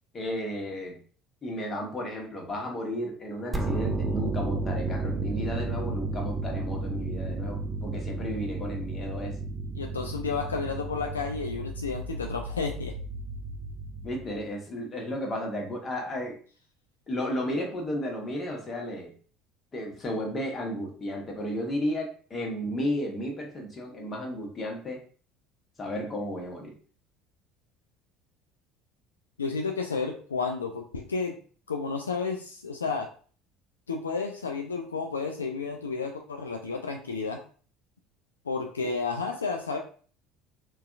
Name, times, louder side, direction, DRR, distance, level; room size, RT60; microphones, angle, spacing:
voice 1, 0.1-1.0 1.4-9.3 14.0-16.4 17.1-19.1 19.7-25.0 25.8-26.7, left 1 dB, 30° left, 0 dB, 1.2 m, -33 dB
sound 1, 3.5-14.5, right 3 dB, 15° right, 0.5 m, -33 dB
voice 2, 9.8-12.9 29.4-31.4 31.7-33.1 33.9-37.4 38.5-39.8, left 4 dB, 85° left, 3 dB, 0.3 m, -31 dB
4.0 x 2.4 x 2.5 m, 0.42 s
figure-of-eight pair, 65°, 0 cm